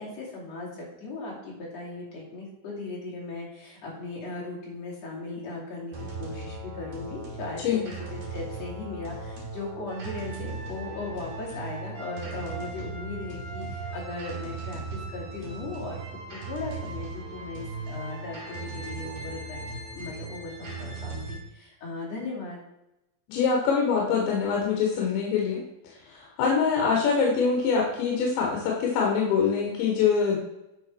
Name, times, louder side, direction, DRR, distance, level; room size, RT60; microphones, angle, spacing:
voice 1, 0.0-22.6, left 2 dB, 40° left, -4 dB, 3.4 m, -38 dB
sound 1, 5.9-21.4, right 3 dB, 45° right, 2.7 m, -38 dB
voice 2, 23.3-25.6 26.1-30.4, left 6 dB, 70° left, -1 dB, 3.5 m, -24 dB
10.5 x 6.2 x 4.6 m, 0.92 s
omnidirectional pair, 5.5 m